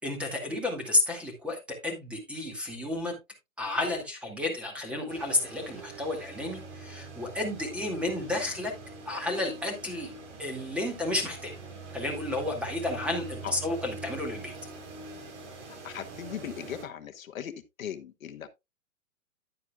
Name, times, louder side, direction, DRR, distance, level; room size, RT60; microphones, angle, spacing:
voice 1, 0.0-3.2 3.6-8.7 9.1-10.1 10.4-11.5 11.9-14.5, left 2 dB, 5° right, 2.2 m, -31 dB
sound 1, 5.1-16.9, right 3 dB, 55° right, 4.1 m, -44 dB
voice 2, 15.7-18.5, left 9 dB, 75° left, 1.2 m, -39 dB
10.5 x 9.4 x 2.3 m
hypercardioid pair, 155°, 41 cm